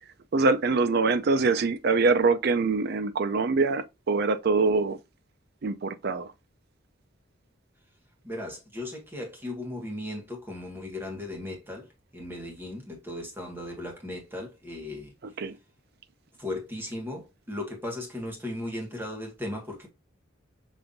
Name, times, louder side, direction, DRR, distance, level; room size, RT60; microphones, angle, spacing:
voice 1, 0.3-5.0 5.6-6.3 15.2-15.6, right 4 dB, 55° right, 0.5 m, -24 dB
voice 2, 8.2-11.9 12.1-15.1 16.4-19.9, left 1 dB, 10° right, 1.6 m, -36 dB
5.4 x 3.4 x 2.6 m
head